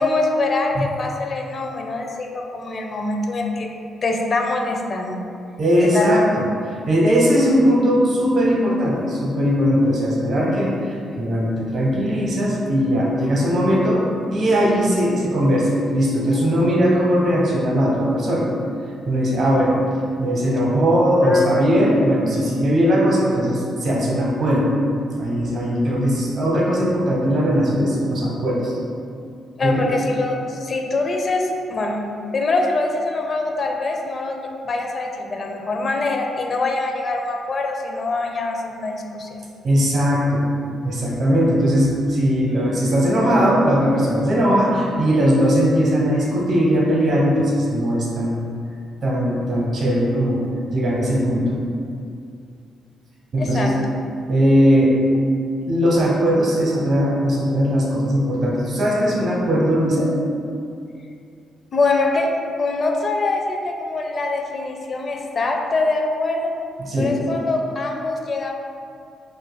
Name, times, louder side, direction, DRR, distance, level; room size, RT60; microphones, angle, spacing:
voice 1, 0.0-3.7 4.0-5.2 5.8-6.2 21.2-21.4 29.6-32.0 32.3-39.4 53.4-53.8 61.7-66.5 67.0-68.5, left 3 dB, 45° left, 2 dB, 0.5 m, -24 dB
voice 2, 5.6-6.2 6.9-14.0 14.3-18.4 19.1-19.8 20.2-24.7 25.2-28.8 29.6-29.7 39.6-40.4 40.8-48.4 49.0-50.4 50.7-51.6 53.3-53.7 54.3-54.9 55.6-60.1 66.8-67.1, equal, 55° right, -3 dB, 0.8 m, -19 dB
7.0 x 2.5 x 2.2 m, 2.4 s
cardioid pair, 85°, 0 cm